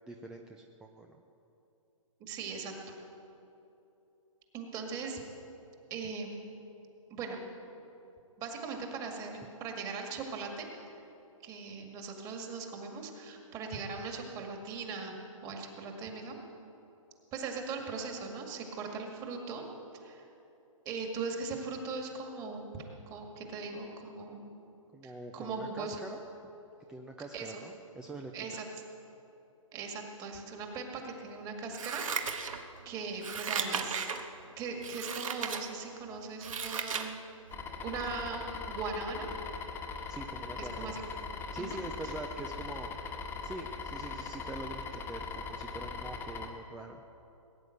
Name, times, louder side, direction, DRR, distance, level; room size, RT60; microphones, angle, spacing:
voice 1, 0.1-1.2 24.9-26.2 26.9-28.5 40.1-41.1 41.5-47.0, right 2 dB, 5° right, 3 dB, 0.3 m, -44 dB
voice 2, 2.2-2.7 4.5-5.2 5.9-6.4 7.1-7.4 8.4-11.0 11.4-15.2 15.4-16.4 17.3-19.6 20.0-20.3 20.9-22.6 23.1-24.6 25.0-26.0 27.3-27.6 28.3-28.7 29.7-32.5 32.9-34.1 34.6-37.2 37.8-39.3 40.6-41.0 41.5-41.8 42.0-42.1, right 4 dB, 20° right, 2 dB, 2.0 m, -39 dB
Scissors, 31.7-32.8 33.2-34.2 34.8-35.6 36.1-37.1 37.5-37.6, right 6 dB, 70° right, 1.5 m, -35 dB
sound 1, 37.5-46.5, left 5 dB, 10° left, 1.2 m, -40 dB
19.5 x 9.5 x 7.8 m, 2.9 s
hypercardioid pair, 150°, 18 cm